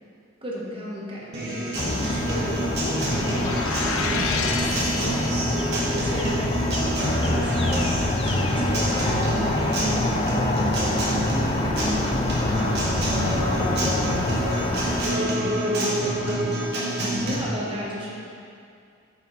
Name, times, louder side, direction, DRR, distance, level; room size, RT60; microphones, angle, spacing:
voice 1, 0.4-5.4 5.8-11.9 12.4-12.9 13.4-16.4 17.0-18.1, equal, 25° right, -5 dB, 1.2 m, -35 dB
Acoustic guitar, 1.3-17.3, right 1 dB, 55° right, 1.3 m, -27 dB
sound 1, 1.8-15.0, left 2 dB, 25° left, 0.4 m, -26 dB
sound 2, 2.9-5.7, left 4 dB, 90° left, 0.6 m, -30 dB
9.2 x 4.2 x 4.0 m, 2.4 s
head